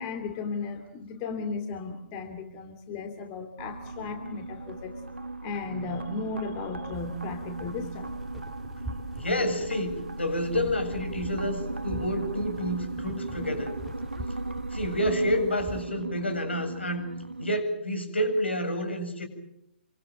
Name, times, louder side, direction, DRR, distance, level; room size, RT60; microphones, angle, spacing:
voice 1, 0.0-4.9 5.4-8.1, left 4 dB, 30° left, 6 dB, 2.8 m, -35 dB
sound 1, 3.6-17.6, right 2 dB, 85° right, 1.0 m, -37 dB
sound 2, 6.9-15.8, right 1 dB, 5° right, 4.4 m, -45 dB
voice 2, 9.1-13.8 14.7-17.1 17.4-19.3, equal, 80° left, 6 dB, 7.9 m, -29 dB
27.5 x 25.5 x 7.7 m, 0.78 s
figure-of-eight pair, 125°, 6 cm